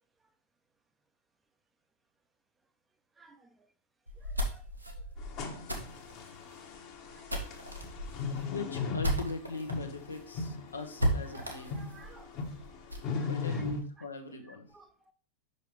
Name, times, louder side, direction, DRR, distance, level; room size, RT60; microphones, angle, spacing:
voice 1, 3.2-3.7 4.2-4.7 7.0-7.5 11.2-12.3 13.1-13.6 14.0-14.1 14.7-15.1, right 4 dB, 15° right, 0.6 m, -57 dB
sound 1, 4.1-9.7 10.1-10.2 10.5-10.6 11.0-13.1, right 1 dB, 85° right, 1.0 m, -35 dB
sound 2, 5.2-13.8, left 4 dB, 40° left, 1.1 m, -38 dB
voice 2, 8.5-11.8 13.2-14.7, left 3 dB, 75° left, 0.8 m, -40 dB
5.6 x 5.3 x 3.2 m
figure-of-eight pair, 90°, 0 cm